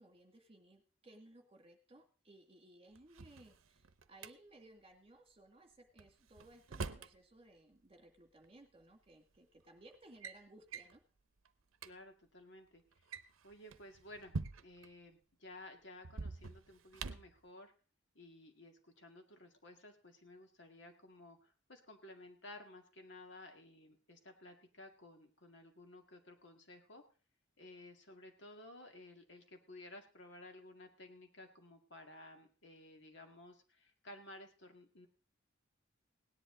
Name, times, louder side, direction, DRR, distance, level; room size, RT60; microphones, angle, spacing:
voice 1, 0.0-11.0, right 1 dB, 30° right, 4 dB, 2.1 m, -61 dB
Drawer open or close, 3.0-4.3 6.0-7.2 8.4-8.5 9.4-9.6 9.9-10.4 10.7-11.0 11.5-11.6 11.7-11.9 12.9-14.9 16.0-17.4, right 4 dB, 85° right, 0.7 m, -45 dB
voice 2, 11.8-12.8 13.4-14.3 14.6-17.7 18.1-27.0 27.6-35.1, left 1 dB, 60° left, 4 dB, 2.1 m, -55 dB
17.5 x 10.5 x 3.9 m, 0.38 s
head